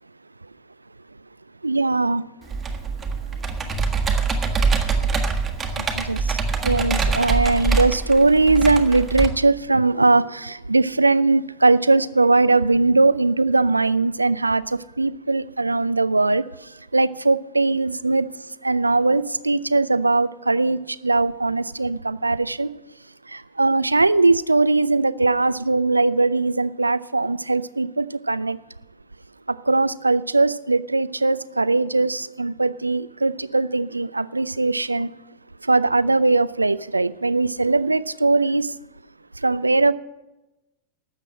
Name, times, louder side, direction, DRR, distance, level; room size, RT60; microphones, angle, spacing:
voice 1, 1.6-2.2 5.8-18.3 18.6-22.8 23.3-28.6 29.5-35.1 35.6-38.7 39.4-39.9, right 3 dB, 80° right, 17 dB, 0.4 m, -20 dB
Computer keyboard, 2.5-9.3, right 4 dB, 20° right, 1.4 m, -24 dB
12.5 x 7.6 x 7.5 m, 1.0 s
figure-of-eight pair, 90°, 0 cm